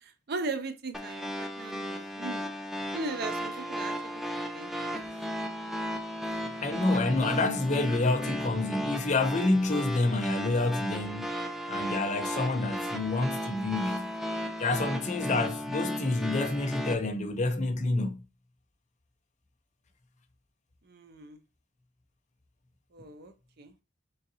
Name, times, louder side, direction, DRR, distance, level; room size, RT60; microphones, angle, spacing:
voice 1, 0.0-2.5 2.9-4.2 4.5-4.8 20.8-21.4 22.9-23.7, right 3 dB, 55° right, 0.5 m, -38 dB
sound 1, 0.9-16.9, equal, ahead, 0.4 m, -35 dB
voice 2, 6.5-11.3 11.7-14.2 14.6-18.2, left 2 dB, 40° left, 0.6 m, -28 dB
3.9 x 3.7 x 2.7 m
head